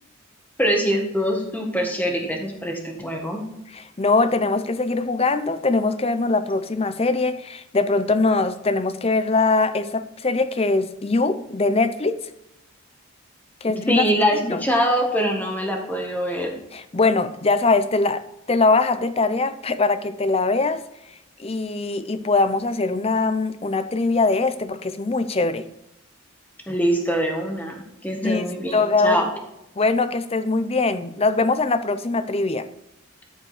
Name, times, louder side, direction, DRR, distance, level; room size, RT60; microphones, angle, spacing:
voice 1, 0.6-3.4 13.9-16.5 26.7-29.3, equal, 10° left, 1 dB, 1.7 m, -23 dB
voice 2, 4.0-12.2 13.6-14.0 14.4-14.6 16.7-18.2 18.5-20.8 21.4-25.6 28.2-28.4 28.7-29.3 29.8-32.7, left 3 dB, 30° left, 11 dB, 0.6 m, -22 dB
13.5 x 5.1 x 4.9 m, 0.85 s
head